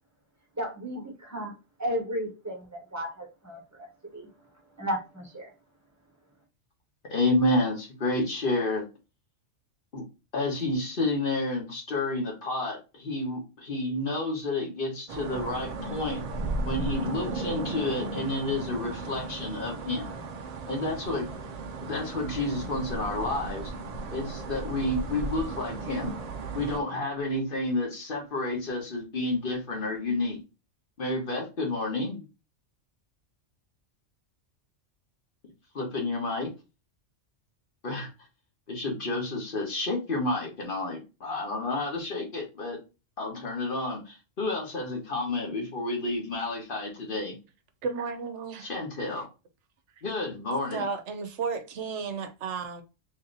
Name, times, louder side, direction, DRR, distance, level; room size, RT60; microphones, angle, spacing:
voice 1, 0.6-1.5 1.8-4.3 4.8-5.5, equal, 15° right, 1.2 m, -34 dB
voice 2, 7.1-8.8 9.9-10.0 10.3-16.2 16.6-20.2 20.7-21.3 21.8-23.7 24.1-26.1 26.5-30.4 31.0-32.3 35.7-36.5 37.8-38.1 38.7-42.8 43.2-47.3 48.7-49.3 50.0-50.8, left 2 dB, 45° left, 1.3 m, -30 dB
sound 1, 15.1-26.8, right 3 dB, 55° right, 0.4 m, -35 dB
voice 3, 47.8-48.7 50.7-52.8, right 5 dB, 70° right, 0.9 m, -33 dB
3.2 x 2.8 x 3.8 m
omnidirectional pair, 1.3 m